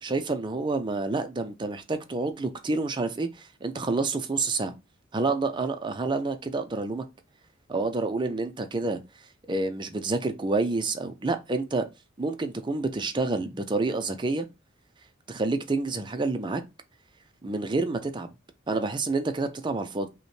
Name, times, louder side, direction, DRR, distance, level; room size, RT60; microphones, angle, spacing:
voice 1, 0.0-4.7 5.1-7.0 7.7-9.0 9.5-11.9 12.2-14.5 15.3-16.6 17.4-18.3 18.7-20.1, right 3 dB, 25° right, 0.4 m, -28 dB
5.1 x 2.2 x 3.2 m
head